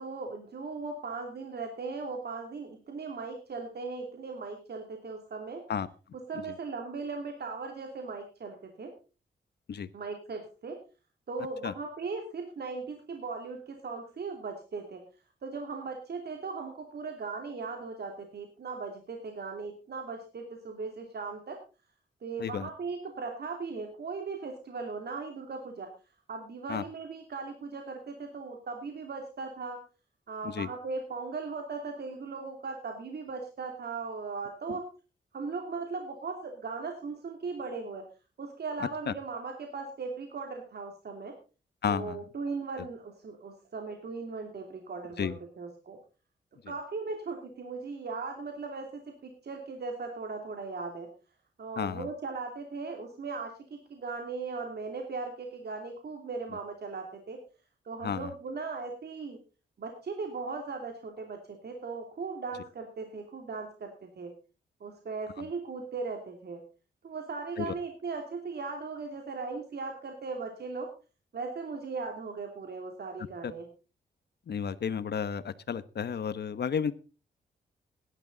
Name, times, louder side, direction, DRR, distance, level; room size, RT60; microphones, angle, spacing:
voice 1, 0.0-5.6 6.3-8.9 9.9-10.8 11.3-15.0 15.4-21.6 22.2-25.9 26.3-29.8 30.3-34.8 35.3-38.0 38.4-41.3 41.9-46.0 46.7-51.1 51.6-57.4 57.8-59.4 59.8-64.3 64.8-66.6 67.0-70.9 71.3-73.6, right 4 dB, 65° right, 3 dB, 2.8 m, -38 dB
voice 2, 41.8-42.2 45.2-45.4 51.8-52.1 58.0-58.3 67.6-67.7 73.4-73.5 74.5-76.9, left 7 dB, 65° left, 14 dB, 1.1 m, -32 dB
17.0 x 11.5 x 4.0 m, 0.34 s
wide cardioid pair, 100°, 18 cm